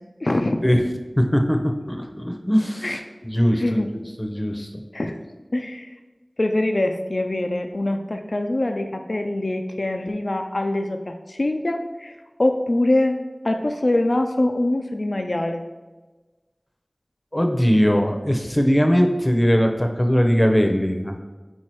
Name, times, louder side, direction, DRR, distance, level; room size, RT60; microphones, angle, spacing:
voice 1, 0.2-0.6 2.8-3.0 3.6-3.9 4.9-5.2 5.5-5.9 6.4-13.2 13.4-15.6, left 1 dB, 65° left, 5 dB, 0.4 m, -23 dB
voice 2, 1.2-1.6 1.9-4.7 17.3-21.2, equal, 25° left, 4 dB, 0.7 m, -20 dB
4.7 x 4.4 x 4.6 m, 1.2 s
wide cardioid pair, 45°, 0 cm